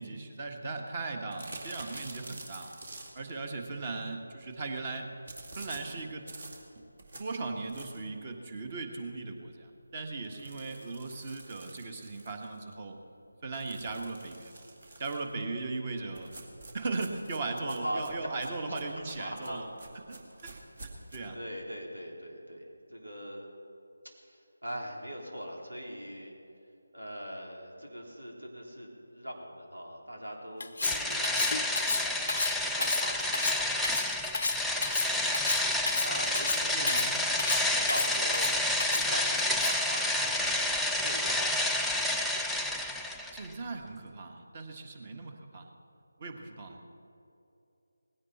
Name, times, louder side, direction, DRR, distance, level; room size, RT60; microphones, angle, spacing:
voice 1, 0.0-2.7 3.1-5.1 5.6-6.3 7.2-13.0 13.4-14.6 15.0-16.4 16.7-19.7 20.1-20.5 20.8-21.4 36.7-37.1 43.3-45.7 46.2-46.8, right 3 dB, 30° right, 4 dB, 1.6 m, -38 dB
sound 1, 1.3-3.4 5.3-8.2 8.6-8.7 9.1-9.2 9.5-9.6 10.2-12.7 13.5-15.3 16.1-21.2, right 2 dB, 50° right, 2.3 m, -48 dB
voice 2, 19.2-19.7 21.3-22.6 22.9-23.5 24.3-26.3 26.9-28.9 29.1-31.9 32.6-33.9 34.7-35.0 36.0-38.4 38.9-41.4 46.3-46.7, equal, 80° right, 0 dB, 3.6 m, -41 dB
Cutlery silverware, 30.6-39.9, left 3 dB, 55° left, 0.6 m, -32 dB
sound 2, 30.8-43.5, left 1 dB, ahead, 0.4 m, -29 dB
19.0 x 16.0 x 4.3 m, 2.7 s
figure-of-eight pair, 160°, 0 cm